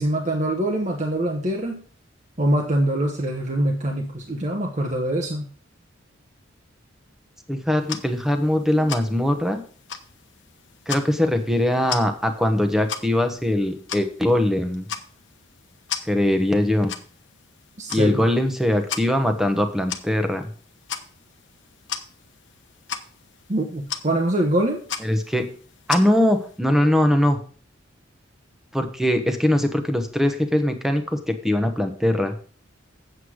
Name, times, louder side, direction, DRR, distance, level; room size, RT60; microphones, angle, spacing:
voice 1, 0.0-1.8 2.4-5.5 17.8-18.2 23.5-24.8, right 1 dB, 35° right, 1 dB, 1.2 m, -24 dB
voice 2, 7.5-9.6 10.9-14.9 16.0-16.9 17.9-20.5 25.0-25.5 25.9-27.4 28.7-32.4, left 1 dB, ahead, 6 dB, 1.1 m, -21 dB
sound 1, 7.8-26.6, left 7 dB, 65° left, 1.1 m, -38 dB
8.0 x 7.9 x 4.9 m, 0.43 s
head